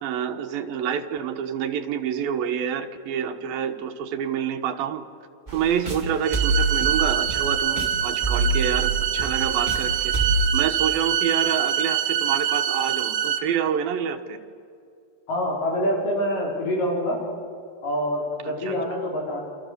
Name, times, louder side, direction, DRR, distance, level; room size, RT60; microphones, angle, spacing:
voice 1, 0.0-5.1 5.5-10.1 10.5-14.4 18.6-18.7, right 8 dB, 85° right, 6 dB, 3.0 m, -27 dB
sound 1, 5.5-10.5, right 2 dB, 15° right, 2.2 m, -26 dB
sound 2, 6.2-13.4, right 9 dB, 60° right, 2.2 m, -25 dB
voice 2, 15.3-17.2 17.8-19.4, equal, 65° left, -3 dB, 7.0 m, -26 dB
28.5 x 27.0 x 6.8 m, 2.4 s
omnidirectional pair, 4.1 m